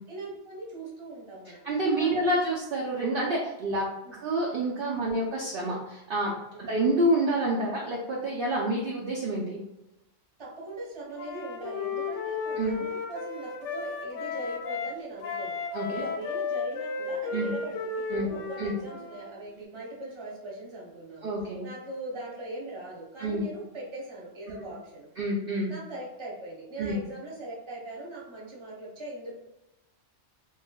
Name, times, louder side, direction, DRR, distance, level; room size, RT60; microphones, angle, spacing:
voice 1, 0.1-1.6 2.0-2.3 4.0-4.2 4.9-5.2 6.5-6.7 10.4-15.5 15.9-21.3 21.6-25.1 25.7-29.3, right 2 dB, 25° right, -4 dB, 0.8 m, -40 dB
voice 2, 1.4-9.6 12.6-12.8 15.7-16.0 17.3-17.5 18.1-18.3 18.6-18.7 21.2-21.7 23.2-23.4 25.2-25.7 26.8-27.0, right 1 dB, 60° right, -4 dB, 0.7 m, -28 dB
Wind instrument woodwind instrument, 11.1-15.0 15.2-19.3, left 4 dB, 75° left, 0.9 m, -34 dB
3.1 x 3.1 x 2.2 m, 0.92 s
omnidirectional pair, 1.3 m